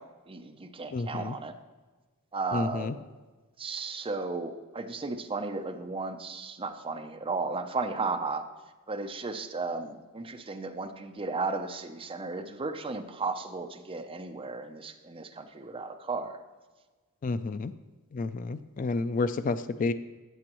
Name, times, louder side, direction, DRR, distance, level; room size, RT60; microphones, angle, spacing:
voice 1, 0.0-1.5 2.3-3.1 3.6-8.4 8.9-16.4, right 3 dB, 25° right, 5 dB, 0.6 m, -34 dB
voice 2, 0.9-1.4 2.5-2.9 17.2-17.7 18.1-19.9, left 3 dB, 35° left, 11 dB, 0.3 m, -30 dB
14.5 x 7.8 x 3.0 m, 1.3 s
head